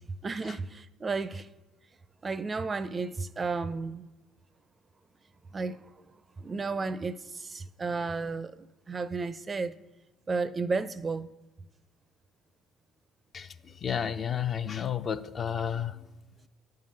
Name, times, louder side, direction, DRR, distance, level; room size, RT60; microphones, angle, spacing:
voice 1, 0.2-1.5 2.2-4.1 5.5-5.8 6.4-9.8 10.3-11.3, right 4 dB, 30° right, 0.4 m, -33 dB
voice 2, 13.3-16.0, left 8 dB, 45° left, 0.4 m, -32 dB
10.0 x 3.8 x 6.4 m
hypercardioid pair, 60°, 0 cm